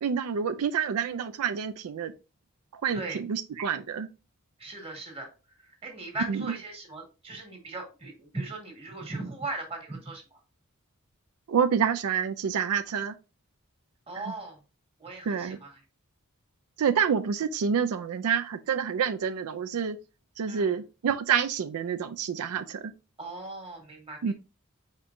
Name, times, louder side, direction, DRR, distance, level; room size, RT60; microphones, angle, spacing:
voice 1, 0.0-2.1 2.7-4.1 6.3-6.5 11.5-13.2 14.1-14.3 15.3-15.6 16.8-20.0 20.4-22.9 24.2-24.3, right 7 dB, 85° right, 0.4 m, -28 dB
voice 2, 4.6-5.3 5.6-10.4 14.1-14.6 15.0-15.8 20.5-20.8 23.2-24.3, right 2 dB, 25° right, 1.5 m, -38 dB
4.5 x 4.3 x 2.5 m
head